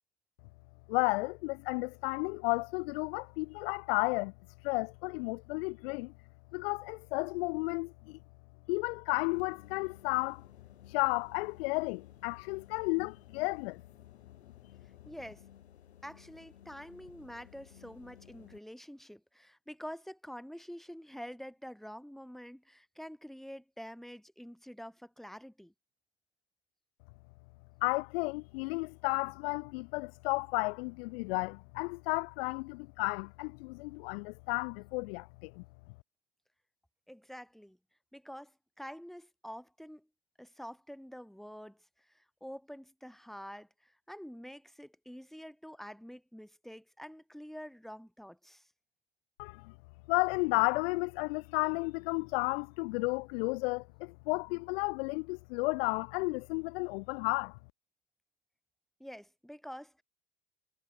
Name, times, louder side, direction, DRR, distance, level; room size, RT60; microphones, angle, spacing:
voice 1, 0.9-4.3 4.6-6.1 6.5-8.2 8.7-10.4 10.9-13.8 27.8-35.6 49.4-49.7 50.1-57.6, left 28 dB, 65° left, 0.6 m, -33 dB
sound 1, 9.3-18.6, left 10 dB, 85° left, 5.4 m, -57 dB
voice 2, 15.1-15.4 16.0-25.7 37.1-37.8 38.1-40.1 40.4-41.8 42.1-48.7 59.0-60.0, equal, ahead, 2.7 m, -47 dB
hypercardioid pair, 85°, 32 cm